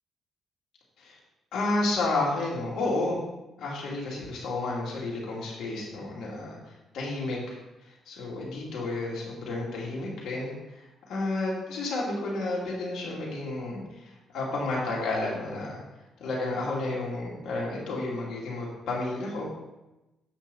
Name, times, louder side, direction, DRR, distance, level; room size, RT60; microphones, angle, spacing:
voice 1, 1.5-3.2 3.6-7.6 7.8-15.8 16.2-19.5, left 2 dB, 75° left, -4 dB, 2.8 m, -31 dB
7.9 x 6.1 x 4.2 m, 0.99 s
cardioid pair, 90°, 0 cm